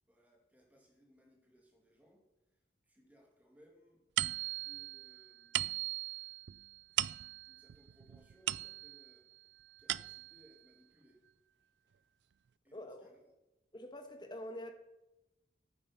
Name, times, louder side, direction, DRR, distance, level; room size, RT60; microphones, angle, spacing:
voice 1, 0.1-4.1 4.6-5.9 7.5-9.3 9.8-11.2 11.8-12.0 12.6-13.3, equal, 10° right, 2.4 m, -66 dB
sound 1, 4.2-9.2 9.6-10.5, right 14 dB, 70° right, 0.3 m, -38 dB
voice 2, 12.7-13.1 13.7-14.7, left 1 dB, 25° left, 1.3 m, -45 dB
9.1 x 8.7 x 5.6 m
head